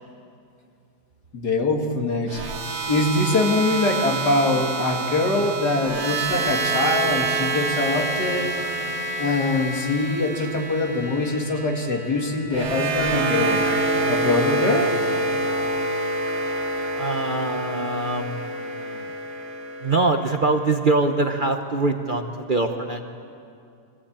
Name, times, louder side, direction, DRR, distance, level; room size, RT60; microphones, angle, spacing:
voice 1, 1.3-2.5 2.9-8.5 9.2-13.7 14.1-15.0, left 2 dB, 80° left, 2 dB, 2.6 m, -23 dB
sound 1, 2.3-20.5, right 3 dB, 80° right, 2.3 m, -27 dB
voice 2, 16.9-19.1 19.8-23.0, right 2 dB, 40° right, 5 dB, 0.8 m, -24 dB
24.0 x 16.0 x 8.7 m, 2.5 s
omnidirectional pair, 1.7 m